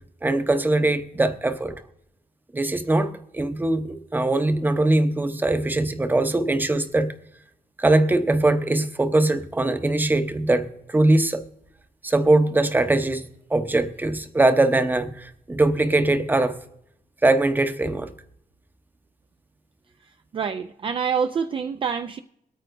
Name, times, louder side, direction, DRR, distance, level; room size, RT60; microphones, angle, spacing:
voice 1, 0.2-1.8 2.5-7.1 7.8-11.4 12.0-13.2 13.5-16.6 17.2-18.1, right 2 dB, 15° right, 8 dB, 0.8 m, -21 dB
voice 2, 20.3-22.2, right 6 dB, 35° right, 8 dB, 0.4 m, -26 dB
23.0 x 9.1 x 2.6 m, 0.78 s
cardioid pair, 130°, 15 cm